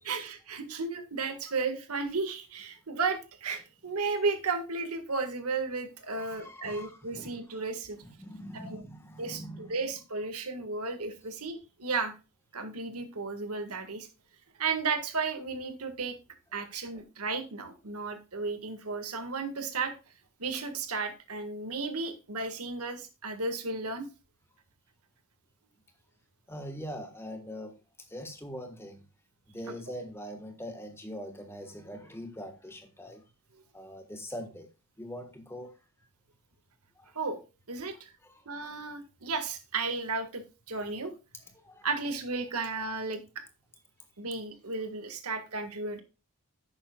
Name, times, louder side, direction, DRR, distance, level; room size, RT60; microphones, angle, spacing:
voice 1, 0.0-8.0 8.5-8.8 9.2-12.1 12.5-14.1 14.6-16.2 16.5-19.9 20.4-24.1 37.2-37.4 37.7-38.1 38.5-41.1 41.8-43.4 44.2-46.0, right 4 dB, 90° right, 1.8 m, -34 dB
voice 2, 6.1-7.6 8.0-9.9 16.9-17.0 26.5-29.0 29.5-33.2 33.7-34.7 35.0-35.8 36.9-37.1 38.2-38.5 41.4-41.9, equal, 10° left, 1.4 m, -43 dB
11.5 x 8.9 x 2.3 m
head